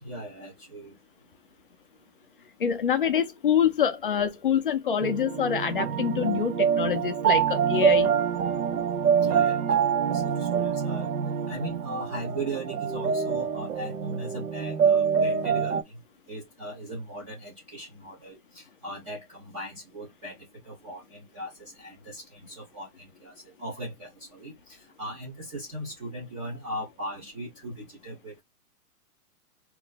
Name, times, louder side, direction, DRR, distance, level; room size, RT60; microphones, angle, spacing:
voice 1, 0.0-0.9 9.2-11.1 11.5-16.0 16.3-20.4 20.6-28.4, right 1 dB, 20° right, 0.8 m, -38 dB
voice 2, 2.6-8.1, left 8 dB, 35° left, 0.5 m, -25 dB
sound 1, 5.0-15.8, right 7 dB, 65° right, 0.9 m, -25 dB
3.0 x 2.6 x 4.0 m
hypercardioid pair, 170°, 47 cm